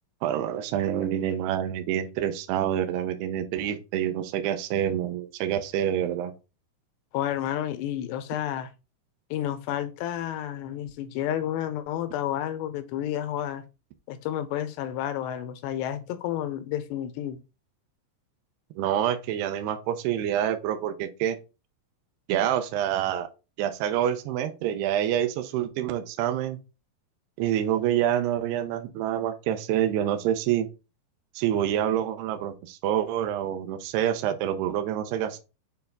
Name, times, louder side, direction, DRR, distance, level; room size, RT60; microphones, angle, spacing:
voice 1, 0.2-6.3 18.8-21.4 22.3-23.3 23.6-26.6 27.4-30.7 31.4-35.4, right 10 dB, 80° right, 2.7 m, -27 dB
voice 2, 7.1-8.7 9.3-13.6 14.1-17.4, left 11 dB, 85° left, 2.9 m, -31 dB
6.6 x 4.6 x 3.6 m
omnidirectional pair, 4.9 m